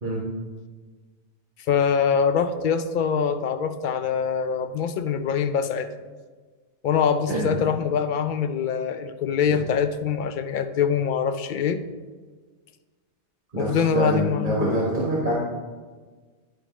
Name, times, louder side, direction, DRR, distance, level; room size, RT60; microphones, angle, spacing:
voice 1, 1.7-5.9 6.8-11.8 13.6-14.7, left 7 dB, 60° left, 9 dB, 0.6 m, -24 dB
voice 2, 13.5-15.4, right 1 dB, 45° right, -5 dB, 1.5 m, -25 dB
10.5 x 5.0 x 3.0 m, 1.4 s
omnidirectional pair, 1.2 m